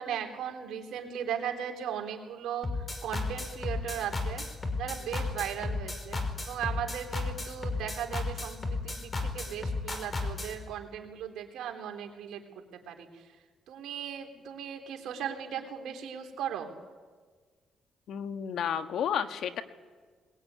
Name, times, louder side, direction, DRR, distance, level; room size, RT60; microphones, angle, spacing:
voice 1, 0.0-2.7 3.0-4.4 4.8-12.4 12.7-13.2 13.7-16.7, right 9 dB, 80° right, 4 dB, 3.4 m, -37 dB
sound 1, 2.6-10.6, left 3 dB, 25° left, 4.4 m, -33 dB
voice 2, 18.1-19.6, left 8 dB, 75° left, 8 dB, 1.5 m, -31 dB
21.0 x 21.0 x 9.5 m, 1.5 s
cardioid pair, 90°, 0 cm